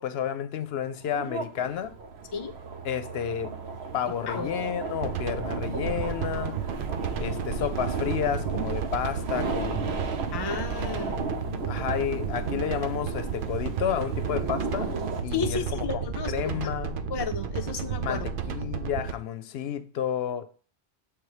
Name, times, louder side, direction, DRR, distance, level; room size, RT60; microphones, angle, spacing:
voice 1, 0.0-1.9 2.8-3.6 3.9-6.6 7.2-10.1 10.8-14.9 15.2-17.0 18.0-20.5, left 9 dB, 75° left, 0.8 m, -31 dB
sound 1, 0.8-15.2, right 3 dB, 85° right, 1.1 m, -35 dB
sound 2, 5.0-19.1, right 7 dB, 60° right, 0.7 m, -33 dB
voice 2, 10.3-11.1 15.3-16.7 17.1-18.2, left 5 dB, 30° left, 0.5 m, -32 dB
6.8 x 3.5 x 4.8 m
omnidirectional pair, 1.1 m